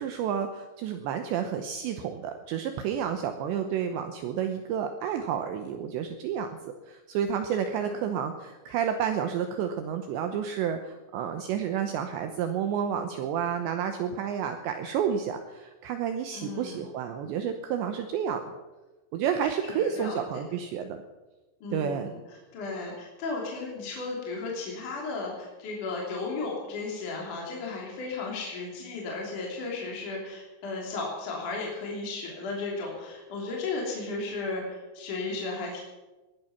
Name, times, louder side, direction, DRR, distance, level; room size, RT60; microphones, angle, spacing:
voice 1, 0.0-6.5 6.9-18.6 19.1-21.0 21.7-22.1, right 8 dB, 75° right, 6 dB, 2.8 m, -30 dB
voice 2, 16.3-16.8 19.7-20.2 21.6-35.8, left 3 dB, 45° left, -2 dB, 4.0 m, -35 dB
20.0 x 12.0 x 5.9 m, 1.1 s
omnidirectional pair, 5.8 m